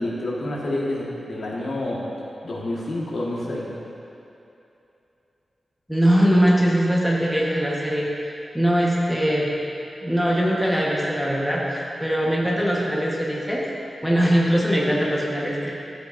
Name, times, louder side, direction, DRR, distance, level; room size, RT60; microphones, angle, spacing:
voice 1, 0.0-2.0 2.4-3.7, left 1 dB, 65° left, -5 dB, 1.5 m, -28 dB
voice 2, 5.9-9.5 10.0-13.6 14.0-15.7, equal, ahead, -5 dB, 1.1 m, -21 dB
12.5 x 8.0 x 2.5 m, 2.8 s
wide cardioid pair, 155°, 0 cm